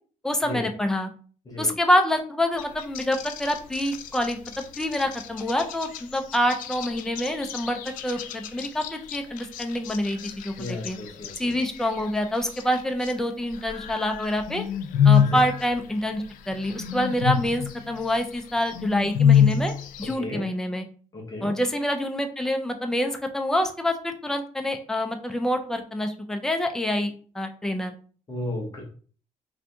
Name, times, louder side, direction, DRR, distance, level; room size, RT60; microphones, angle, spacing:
voice 1, 0.2-1.1 1.6-4.4 4.8-11.0 11.4-14.6 15.0-19.7 20.0-20.8 21.4-27.9, left 1 dB, 5° left, 5 dB, 0.3 m, -26 dB
sound 1, 2.5-13.2 13.5-20.2, left 8 dB, 90° left, 0.4 m, -28 dB
voice 2, 10.6-11.6 15.2-15.4 20.0-20.4 21.1-21.5 28.3-28.8, left 1 dB, 25° left, -2 dB, 0.8 m, -34 dB
2.6 x 2.6 x 3.3 m, 0.42 s
cardioid pair, 155°, 14 cm